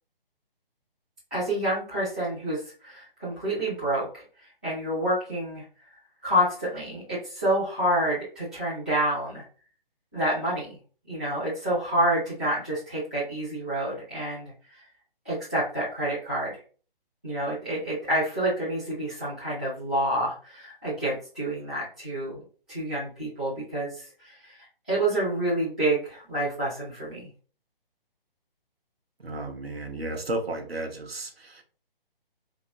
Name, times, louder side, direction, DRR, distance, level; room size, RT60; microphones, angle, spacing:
voice 1, 1.3-4.2 4.6-5.6 6.2-9.5 10.1-10.7 11.1-14.9 15.2-16.6 17.2-22.4 22.7-27.3, right 1 dB, 5° left, -12 dB, 0.4 m, -28 dB
voice 2, 29.2-31.6, right 2 dB, 90° right, 4 dB, 0.9 m, -33 dB
2.9 x 2.8 x 3.7 m, 0.40 s
figure-of-eight pair, 145°, 29 cm